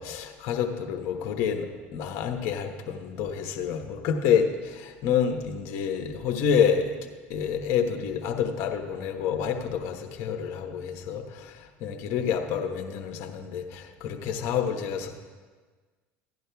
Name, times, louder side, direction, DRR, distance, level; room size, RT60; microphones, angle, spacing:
voice 1, 0.0-7.0 7.3-15.1, left 7 dB, 60° left, 4 dB, 1.1 m, -28 dB
16.0 x 11.0 x 2.3 m, 1.4 s
hypercardioid pair, 85°, 6 cm